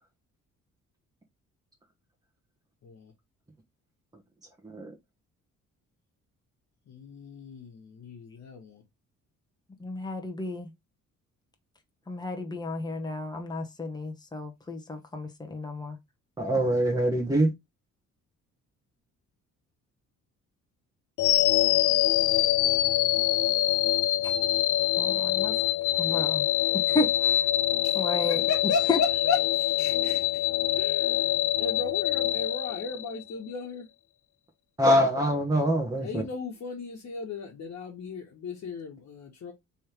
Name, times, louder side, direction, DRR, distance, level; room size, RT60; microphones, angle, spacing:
voice 1, 2.8-3.1 6.9-8.8 21.8-23.8 24.2-24.5 27.8-33.9 36.0-39.5, left 4 dB, 60° left, 1.4 m, -36 dB
voice 2, 9.8-10.7 12.1-16.0 24.2-24.3 25.0-25.5 26.0-26.5 26.9-27.4 27.9-28.4 28.9-29.0, left 3 dB, 15° left, 1.1 m, -32 dB
voice 3, 16.4-17.5 34.8-36.2, equal, 15° right, 1.2 m, -24 dB
sound 1, 21.2-33.3, left 14 dB, 85° left, 0.5 m, -25 dB
3.5 x 3.3 x 4.5 m
cardioid pair, 90°, 30 cm